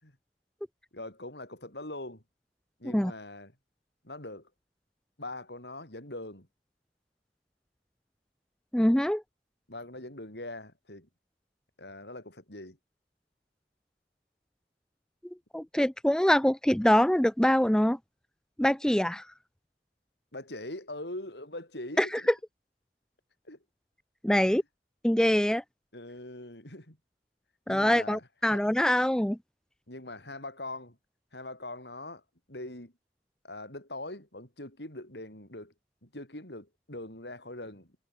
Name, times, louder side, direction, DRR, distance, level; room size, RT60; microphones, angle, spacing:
voice 1, 0.9-2.2 2.8-3.6 4.0-4.5 5.2-6.5 9.7-11.1 11.8-12.8 20.3-22.3 23.4-23.6 25.9-27.0 27.7-28.6 29.9-31.0 31.3-32.2 32.5-32.9 33.4-35.7 36.0-38.0, left 2 dB, 75° left, 7.8 m, -42 dB
voice 2, 8.7-9.2 15.5-18.0 18.6-19.2 22.0-22.1 24.2-24.6 25.0-25.6 27.7-29.4, equal, 5° left, 0.4 m, -24 dB
head